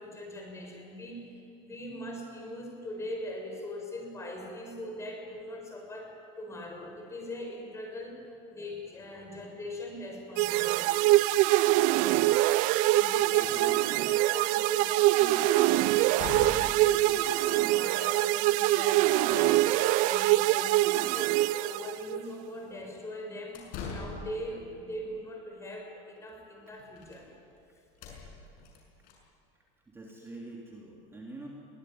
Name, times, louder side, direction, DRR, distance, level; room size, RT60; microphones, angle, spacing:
voice 1, 0.0-11.2 12.9-13.7 14.0-27.3, left 1 dB, 20° left, 2 dB, 6.2 m, -41 dB
sound 1, 10.4-22.2, right 17 dB, 55° right, 0.5 m, -24 dB
voice 2, 13.1-14.1 26.7-26.8 29.9-31.5, right 2 dB, 15° right, -2 dB, 3.3 m, -46 dB
sound 2, 13.4-13.5 15.4-15.5 16.0-16.9 23.3-24.5 26.3-26.4 26.7-27.2 27.5-27.6 27.9-29.1, left 4 dB, 60° left, 6.5 m, -41 dB
23.0 x 18.0 x 9.5 m, 2.6 s
supercardioid pair, 135°, 16 cm